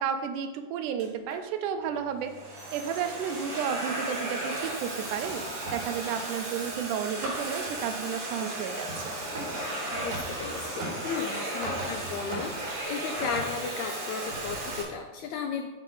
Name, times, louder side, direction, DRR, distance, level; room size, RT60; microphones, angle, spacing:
voice 1, 0.0-9.1, right 8 dB, 80° right, 8 dB, 2.1 m, -32 dB
Domestic sounds home sounds, 1.0-1.4 2.1-14.8, right 1 dB, 65° right, 2.5 m, -34 dB
voice 2, 9.9-15.7, left 6 dB, 80° left, 4 dB, 1.7 m, -35 dB
7.2 x 4.9 x 3.8 m, 1.2 s
omnidirectional pair, 3.6 m